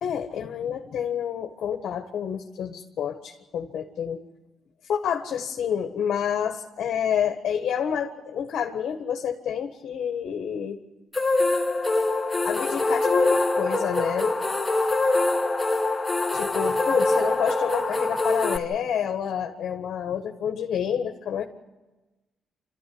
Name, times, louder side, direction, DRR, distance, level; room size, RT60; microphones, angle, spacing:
voice 1, 0.0-4.2 4.9-10.8 12.4-14.4 16.3-21.4, left 8 dB, 65° left, 4 dB, 1.5 m, -28 dB
sound 1, 11.1-18.6, left 2 dB, 15° left, 1.4 m, -24 dB
27.0 x 14.0 x 9.6 m, 1.1 s
cardioid pair, 90°, 0 cm